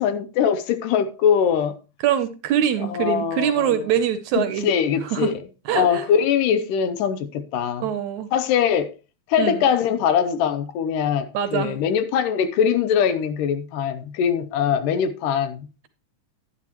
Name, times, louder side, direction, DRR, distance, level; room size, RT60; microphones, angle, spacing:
voice 1, 0.0-1.8 2.9-3.8 4.4-5.4 5.7-7.9 8.3-8.9 9.3-15.7, left 8 dB, 80° left, 2.4 m, -22 dB
voice 2, 2.0-4.7 5.1-5.3 5.7-6.1 7.8-8.3 9.4-9.7 11.3-11.8, right 9 dB, 75° right, 1.8 m, -23 dB
11.5 x 10.5 x 3.0 m
omnidirectional pair, 3.8 m